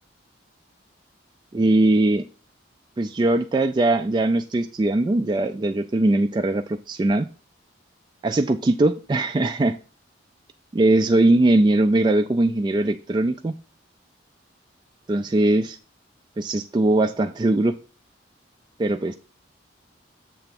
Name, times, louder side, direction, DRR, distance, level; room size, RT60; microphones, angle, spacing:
voice 1, 1.5-2.2 3.0-7.3 8.2-9.8 10.7-13.5 15.1-15.8 16.4-17.8 18.8-19.1, right 2 dB, 25° right, 6 dB, 0.3 m, -20 dB
7.7 x 3.5 x 5.8 m, 0.36 s
head